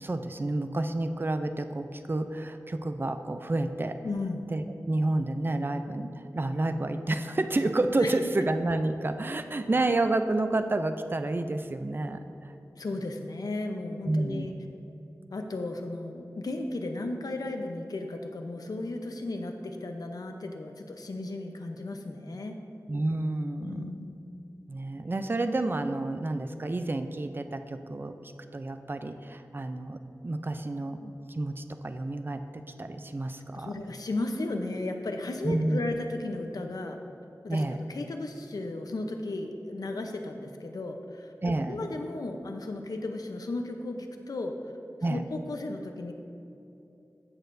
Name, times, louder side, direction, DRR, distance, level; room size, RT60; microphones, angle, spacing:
voice 1, 0.0-4.0 4.5-12.5 14.1-14.5 22.9-24.0 24.7-28.2 28.5-30.0 30.2-33.7 35.4-35.8 37.5-37.8 41.4-41.8 45.0-45.2, right 2 dB, 35° right, 8 dB, 0.4 m, -30 dB
voice 2, 4.0-4.5 8.0-8.2 12.7-14.5 15.3-22.6 23.6-24.2 33.5-37.0 37.4-41.3 41.7-44.5 45.1-46.1, left 2 dB, 75° left, 4 dB, 0.7 m, -35 dB
14.5 x 6.6 x 2.6 m, 2.8 s
wide cardioid pair, 65°, 6 cm